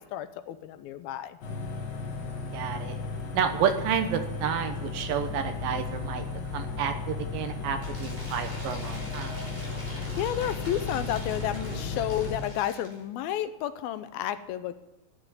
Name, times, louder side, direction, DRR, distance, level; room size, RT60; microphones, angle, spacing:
voice 1, 0.0-1.4 9.8-14.7, left 11 dB, 80° left, 11 dB, 2.5 m, -32 dB
sound 1, 1.4-12.4, left 4 dB, 50° left, 2.6 m, -35 dB
voice 2, 2.5-3.0 3.3-6.3 6.5-9.4, right 8 dB, 70° right, 7 dB, 2.7 m, -30 dB
Cheering / Applause / Crowd, 7.8-13.0, equal, 5° right, 4.0 m, -43 dB
12.5 x 9.5 x 9.9 m, 0.92 s
omnidirectional pair, 4.5 m